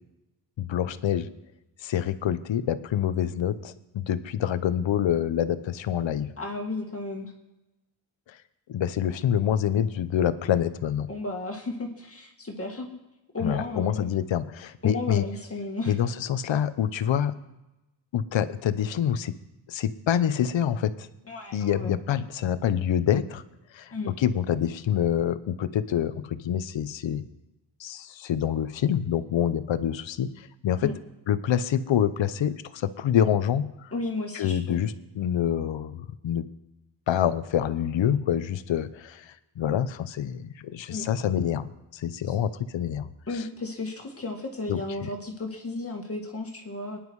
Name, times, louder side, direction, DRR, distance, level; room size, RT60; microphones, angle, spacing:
voice 1, 0.6-1.3 1.8-6.3 8.3-8.4 8.7-11.1 13.4-15.2 15.9-17.3 18.1-19.3 19.7-21.1 21.5-23.4 23.7-27.2 27.8-30.9 31.3-33.9 34.3-36.5 37.1-43.1 43.3-43.4 44.7-45.1, left 9 dB, 80° left, 13 dB, 0.9 m, -26 dB
voice 2, 6.4-7.3 11.1-13.0 13.3-14.0 14.8-15.9 21.3-21.9 23.9-24.1 30.8-30.9 33.9-34.8 40.9-41.1 42.2-42.4 43.3-47.0, left 2 dB, 30° left, 1 dB, 2.2 m, -33 dB
24.5 x 10.5 x 4.8 m, 0.97 s
wide cardioid pair, 125°, 44 cm